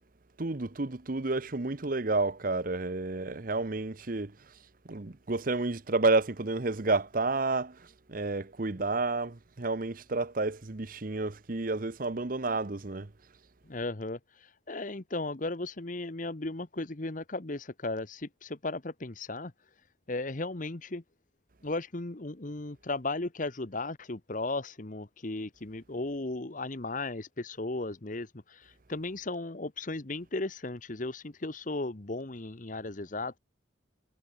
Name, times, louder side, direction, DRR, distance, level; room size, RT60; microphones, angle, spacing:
voice 1, 0.4-4.3 4.8-13.1, right 3 dB, 45° right, 0.9 m, -30 dB
voice 2, 13.6-19.5 20.1-21.0 21.6-33.4, left 2 dB, 40° left, 1.2 m, -36 dB
head